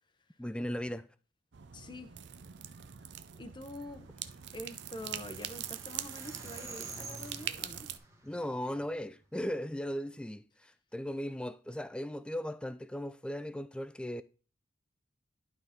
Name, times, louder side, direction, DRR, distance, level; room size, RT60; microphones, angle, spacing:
voice 1, 0.4-1.1 8.2-14.2, equal, 5° left, 0.3 m, -37 dB
sound 1, 1.5-8.0, right 10 dB, 60° right, 0.5 m, -43 dB
voice 2, 1.7-2.1 3.4-4.1 4.5-7.9, left 1 dB, 25° left, 0.7 m, -45 dB
sound 2, 4.0-9.4, right 2 dB, 15° right, 1.1 m, -50 dB
11.5 x 4.0 x 3.6 m
head